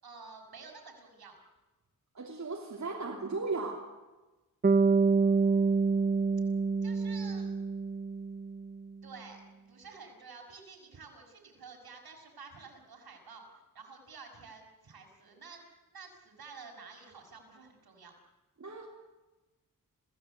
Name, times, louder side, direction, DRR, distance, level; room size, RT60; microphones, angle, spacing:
voice 1, 0.0-1.4 5.4-6.1 6.8-7.5 9.0-18.1, right 4 dB, 80° right, 2 dB, 6.1 m, -51 dB
voice 2, 2.1-3.9 18.6-18.9, right 3 dB, 50° right, 0 dB, 3.4 m, -36 dB
Bass guitar, 4.6-8.8, right 4 dB, 25° right, 0.9 m, -27 dB
27.0 x 17.0 x 8.5 m, 1.1 s
wide cardioid pair, 95°, 37 cm